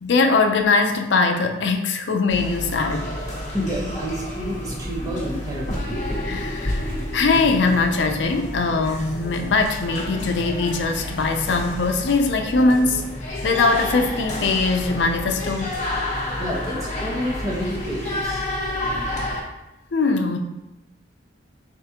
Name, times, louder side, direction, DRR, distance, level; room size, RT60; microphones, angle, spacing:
voice 1, 0.0-3.1 6.2-13.1 13.4-15.7 19.9-20.4, left 3 dB, 75° left, 5 dB, 0.5 m, -21 dB
sound 1, 2.3-19.4, left 1 dB, 40° left, 1.1 m, -30 dB
voice 2, 3.5-5.9 16.4-18.4, equal, 20° right, -5 dB, 1.0 m, -29 dB
4.2 x 3.6 x 2.8 m, 0.94 s
head